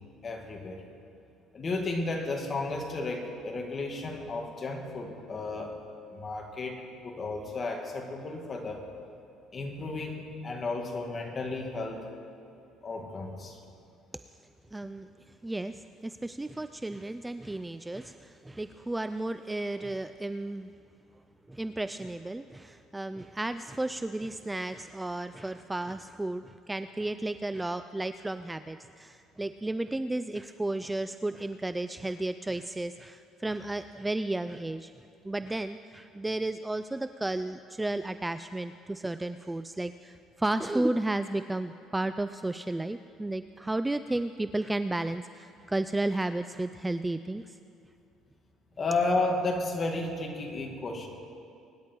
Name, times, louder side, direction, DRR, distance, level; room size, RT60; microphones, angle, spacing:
voice 1, 0.2-0.8 1.5-5.8 6.1-8.8 9.5-12.0 12.8-13.6 48.8-51.1, left 2 dB, 30° left, 1 dB, 2.1 m, -33 dB
voice 2, 14.7-20.7 21.5-34.9 35.2-47.6, right 2 dB, 10° right, 11 dB, 0.3 m, -33 dB
24.0 x 10.5 x 4.6 m, 2.5 s
cardioid pair, 130°, 0 cm